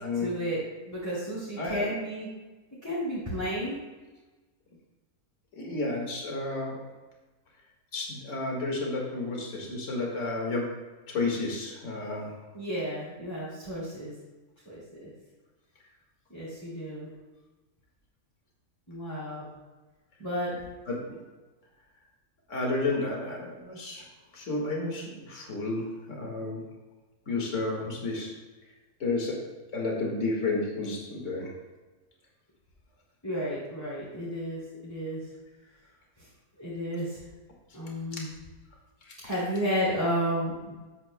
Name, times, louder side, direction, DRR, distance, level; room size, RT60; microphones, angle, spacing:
voice 1, 0.1-2.3 2.8-3.8 12.5-14.1 14.6-15.1 16.3-17.1 18.9-19.5 20.2-20.6 33.2-35.2 36.6-37.2 37.7-38.3 39.2-40.7, equal, 15° left, -10 dB, 2.6 m, -32 dB
voice 2, 1.6-1.9 5.6-6.8 7.9-10.7 11.1-12.3 20.9-21.2 22.5-24.0 24.3-25.9 26.2-26.6 27.3-28.3 29.0-29.3 29.7-31.5 38.1-38.2 39.1-39.2, left 2 dB, 55° left, -1 dB, 2.1 m, -31 dB
12.5 x 9.4 x 2.2 m, 1.2 s
omnidirectional pair, 1.6 m